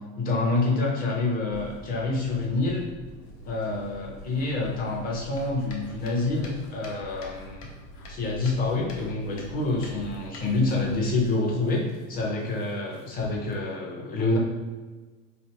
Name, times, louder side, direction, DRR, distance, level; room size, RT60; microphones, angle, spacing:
voice 1, 0.0-2.8 3.4-7.7 8.1-14.4, left 2 dB, 25° left, -1 dB, 0.6 m, -27 dB
sound 1, 1.5-11.3, equal, 55° left, 1.0 m, -46 dB
sound 2, 4.2-13.6, left 2 dB, 80° left, 1.0 m, -49 dB
4.6 x 3.2 x 2.8 m, 1.3 s
cardioid pair, 175°, 38 cm